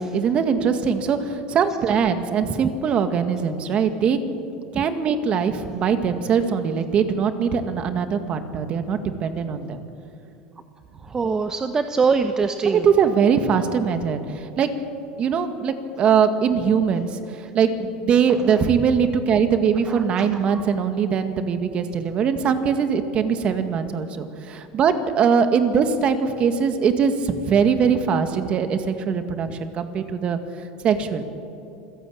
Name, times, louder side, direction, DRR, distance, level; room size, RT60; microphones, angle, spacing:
voice 1, 0.1-4.2 4.7-9.8 12.6-14.7 15.2-30.4 30.8-31.2, right 6 dB, 35° right, 8 dB, 2.1 m, -21 dB
voice 2, 11.0-12.9 18.5-18.6 19.9-20.6, right 4 dB, 20° right, 7 dB, 1.0 m, -24 dB
27.0 x 16.0 x 8.8 m, 2.6 s
supercardioid pair, 125°, 3 cm